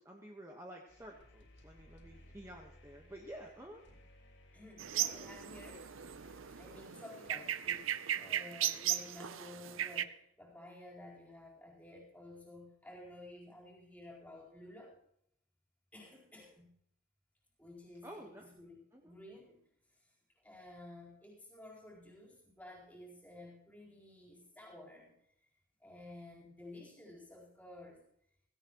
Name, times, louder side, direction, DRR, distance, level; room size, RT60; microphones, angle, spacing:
voice 1, 0.0-3.8 18.0-18.5 18.9-19.1, right 1 dB, 15° right, 0 dB, 1.3 m, -51 dB
sound 1, 0.9-7.8, left 1 dB, 60° left, 3.4 m, -60 dB
voice 2, 4.5-5.9 6.5-15.0 15.9-16.7 17.6-19.6 19.9-25.5 25.8-28.0, left 1 dB, 5° left, -3 dB, 4.3 m, -53 dB
sound 2, 4.8-10.0, right 11 dB, 80° right, 0.7 m, -37 dB
17.0 x 16.5 x 3.1 m, 0.71 s
head